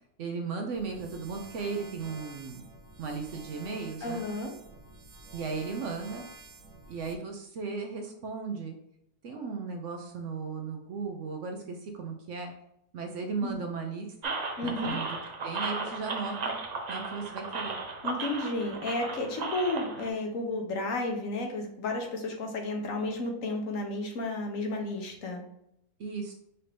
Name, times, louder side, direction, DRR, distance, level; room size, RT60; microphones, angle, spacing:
voice 1, 0.2-2.6 3.0-4.3 5.3-6.2 6.9-8.8 9.2-12.5 12.9-14.4 14.6-15.1 15.4-16.6 16.9-17.8 26.0-26.3, right 4 dB, 65° right, 3 dB, 0.8 m, -36 dB
sound 1, 0.7-7.2, right 1 dB, 35° right, 0.6 m, -49 dB
voice 2, 4.0-4.5 13.4-13.5 14.6-15.0 18.0-25.4, left 2 dB, 65° left, 2 dB, 1.1 m, -32 dB
sound 2, 14.2-20.1, right 3 dB, 85° right, 0.3 m, -35 dB
5.8 x 2.6 x 3.3 m, 0.76 s
omnidirectional pair, 1.6 m